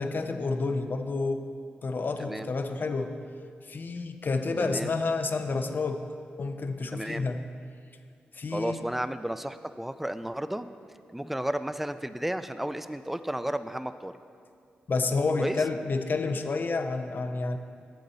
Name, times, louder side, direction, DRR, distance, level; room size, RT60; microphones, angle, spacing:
voice 1, 0.0-1.5 1.8-3.1 3.7-6.1 6.4-7.4 8.3-8.8 14.9-17.6, left 3 dB, 55° left, 7 dB, 0.6 m, -29 dB
voice 2, 4.6-5.0 6.9-7.3 8.5-10.7 11.1-14.1 15.4-15.6, right 1 dB, 5° right, 11 dB, 0.4 m, -33 dB
9.3 x 7.4 x 4.0 m, 2.3 s
supercardioid pair, 50°, 4 cm